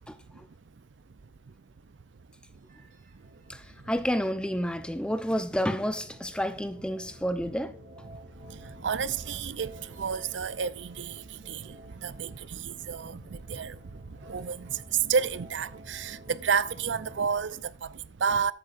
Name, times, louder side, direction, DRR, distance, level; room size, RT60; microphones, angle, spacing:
sound 1, 2.6-17.2, equal, 40° right, 2.7 m, -50 dB
voice 1, 3.5-7.8, equal, 5° left, 0.7 m, -30 dB
voice 2, 8.1-18.5, right 6 dB, 80° right, 0.5 m, -31 dB
13.5 x 8.9 x 2.5 m
head